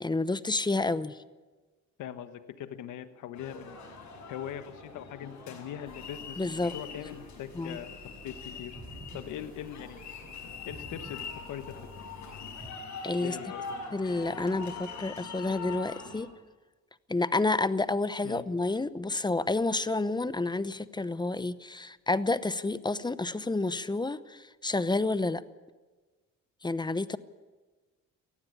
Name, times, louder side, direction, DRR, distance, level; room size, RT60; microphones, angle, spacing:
voice 1, 0.0-1.2 6.4-6.7 7.5-7.8 13.0-13.4 13.9-16.3 17.1-25.4 26.6-27.2, left 2 dB, 15° left, 15 dB, 0.8 m, -29 dB
voice 2, 2.0-3.8 4.3-8.8 9.1-10.0 10.7-11.8 13.2-13.6 18.2-18.5, left 10 dB, 85° left, 10 dB, 1.4 m, -41 dB
sound 1, 3.4-16.3, left 5 dB, 70° left, 6.0 m, -43 dB
sound 2, 5.9-12.7, right 2 dB, 30° right, 5.5 m, -51 dB
18.5 x 15.0 x 10.0 m, 1.3 s
cardioid pair, 90°, 30 cm